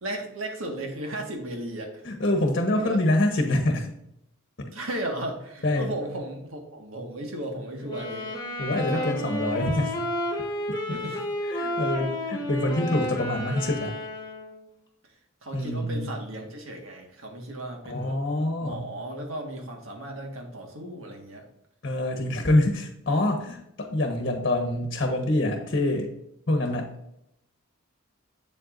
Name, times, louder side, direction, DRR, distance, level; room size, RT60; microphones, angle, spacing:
voice 1, 0.0-2.1 2.7-3.1 4.7-8.3 8.7-9.4 10.9-11.3 15.0-18.2 18.6-21.5, right 1 dB, 80° right, 2 dB, 1.7 m, -35 dB
voice 2, 2.0-3.9 5.6-5.9 8.6-10.0 11.5-14.0 15.5-16.1 17.9-18.9 21.8-26.1 26.5-27.0, left 1 dB, 50° left, 3 dB, 1.1 m, -25 dB
sound 1, 7.8-14.7, left 1 dB, 20° left, 1.5 m, -31 dB
8.1 x 7.6 x 2.6 m, 0.78 s
head